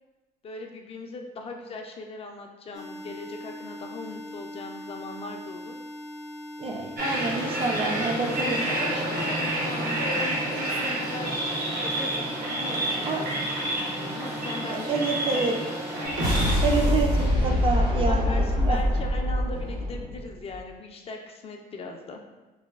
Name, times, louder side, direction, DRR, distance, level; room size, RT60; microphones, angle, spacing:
voice 1, 0.4-5.8 8.2-11.4 11.8-14.9 15.3-15.6 18.0-22.2, left 3 dB, 35° left, 2 dB, 0.4 m, -39 dB
sound 1, 2.7-17.3, left 1 dB, 80° left, 0.6 m, -40 dB
voice 2, 6.6-8.6 13.1-13.2 14.7-15.5 16.6-18.8, right 4 dB, 35° right, 2 dB, 0.4 m, -28 dB
sound 2, 7.0-16.6, right 1 dB, 60° right, 0.7 m, -29 dB
sound 3, 16.0-20.6, left 1 dB, 85° right, 1.0 m, -24 dB
3.9 x 2.1 x 2.3 m, 1.1 s
cardioid pair, 110°, 17 cm